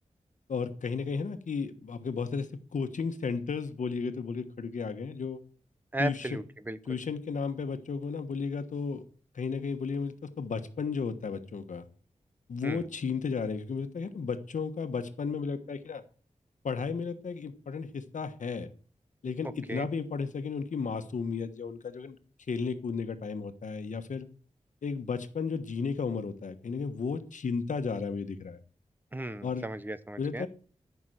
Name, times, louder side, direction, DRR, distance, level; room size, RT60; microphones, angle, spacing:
voice 1, 0.5-5.4 6.0-6.4 6.9-9.0 9.3-11.8 12.5-16.0 16.6-18.7 19.2-22.1 22.5-24.3 24.8-28.6 29.4-29.6 30.2-30.5, left 5 dB, 90° left, 9 dB, 1.3 m, -34 dB
voice 2, 5.9-7.0 12.6-12.9 19.7-19.9 29.1-30.5, right 2 dB, 15° right, 14 dB, 0.9 m, -36 dB
14.0 x 6.1 x 7.8 m, 0.42 s
wide cardioid pair, 90°, 13 cm